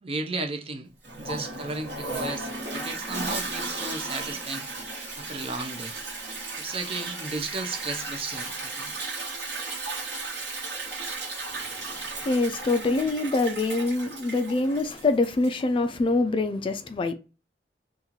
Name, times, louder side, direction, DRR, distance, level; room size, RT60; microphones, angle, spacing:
voice 1, 0.0-0.9 1.2-4.7 5.2-5.9 6.6-9.0, right 3 dB, 35° right, 0.5 m, -34 dB
Toilet flush, 1.0-15.7, right 3 dB, 70° right, 1.2 m, -35 dB
voice 2, 11.5-17.1, left 3 dB, 30° left, 0.3 m, -25 dB
2.9 x 2.4 x 3.6 m
head